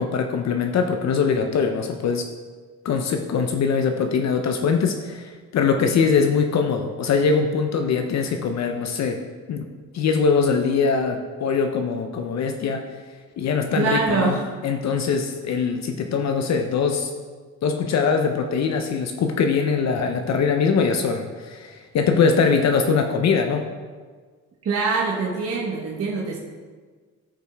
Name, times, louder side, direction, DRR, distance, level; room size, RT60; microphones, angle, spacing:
voice 1, 0.0-2.3 2.8-9.2 9.5-9.7 9.9-12.9 13.4-14.4 14.6-17.1 17.6-23.6, left 5 dB, 60° left, 5 dB, 0.7 m, -22 dB
voice 2, 13.7-14.4 24.6-26.4, right 4 dB, 50° right, -3 dB, 1.2 m, -24 dB
13.5 x 5.2 x 3.5 m, 1.5 s
cardioid pair, 90°, 30 cm